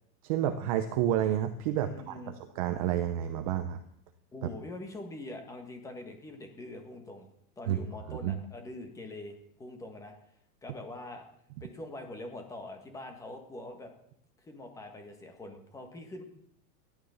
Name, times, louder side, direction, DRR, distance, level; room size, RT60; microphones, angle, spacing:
voice 1, 0.2-3.8 7.7-7.8 8.1-8.4, right 11 dB, 25° right, 8 dB, 0.6 m, -30 dB
voice 2, 1.8-2.3 4.3-7.3 7.6-10.1 10.6-11.2 11.6-13.9 14.4-16.2, left 2 dB, 5° left, 4 dB, 1.7 m, -44 dB
16.0 x 12.0 x 7.1 m, 0.72 s
supercardioid pair, 175°, 45 cm